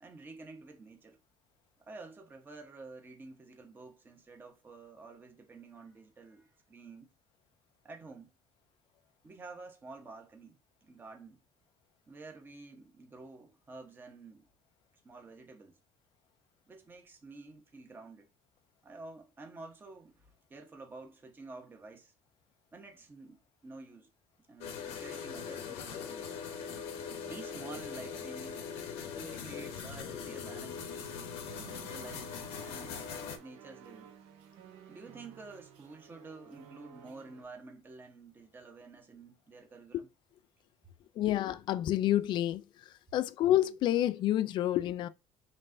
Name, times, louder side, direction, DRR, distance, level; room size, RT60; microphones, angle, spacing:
voice 1, 0.0-1.2 1.8-7.1 7.8-8.3 9.2-11.4 12.1-14.5 15.0-15.8 16.7-18.3 18.8-22.1 22.7-24.1 24.5-26.3 27.3-28.6 29.1-32.3 32.6-33.1 33.4-34.1 34.9-40.1, right 3 dB, 20° right, 1.0 m, -50 dB
sound 1, 24.6-33.4, left 6 dB, 85° left, 0.9 m, -41 dB
sound 2, 31.4-37.4, right 8 dB, 75° right, 0.8 m, -54 dB
voice 2, 41.2-42.6 43.1-45.1, left 13 dB, 50° left, 0.4 m, -28 dB
5.2 x 3.3 x 2.6 m
cardioid pair, 145°, 10 cm